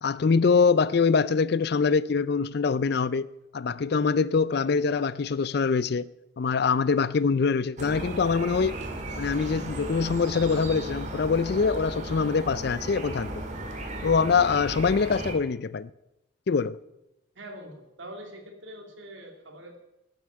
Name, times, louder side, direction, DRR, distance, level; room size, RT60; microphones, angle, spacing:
voice 1, 0.0-3.3 3.5-6.1 6.4-8.8 9.2-13.4 14.0-15.9 16.5-16.8, left 5 dB, 50° left, 0.4 m, -24 dB
sound 1, 7.8-15.3, right 1 dB, 35° right, 1.9 m, -35 dB
voice 2, 17.3-19.8, right 1 dB, 65° right, 2.7 m, -43 dB
12.0 x 8.0 x 9.6 m
head